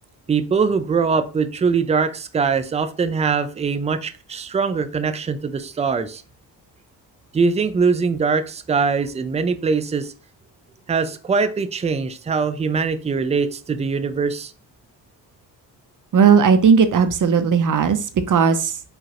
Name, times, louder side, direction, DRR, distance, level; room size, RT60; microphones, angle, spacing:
voice 1, 0.3-6.2 7.3-10.1 10.9-14.5, right 5 dB, 15° right, 11 dB, 0.4 m, -22 dB
voice 2, 16.1-18.0 18.3-18.7, right 6 dB, 45° right, 10 dB, 0.7 m, -16 dB
4.8 x 2.4 x 2.9 m, 0.37 s
supercardioid pair, 65°, 43 cm